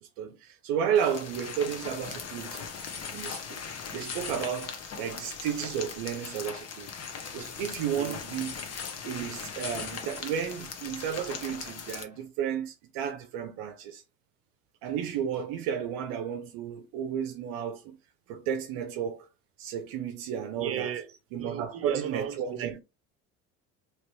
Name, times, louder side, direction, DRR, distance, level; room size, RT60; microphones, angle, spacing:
voice 1, 0.2-2.7 3.1-3.6 3.9-6.9 7.3-8.5 9.0-14.0 14.8-18.0 18.3-19.3 19.6-20.9 21.3-22.8, right 8 dB, 70° right, 0.6 m, -32 dB
sound 1, 1.0-12.0, left 6 dB, 45° left, 1.0 m, -39 dB
voice 2, 20.6-21.1 21.4-22.8, right 8 dB, 40° right, 0.9 m, -35 dB
3.0 x 2.9 x 3.0 m
supercardioid pair, 80°, 37 cm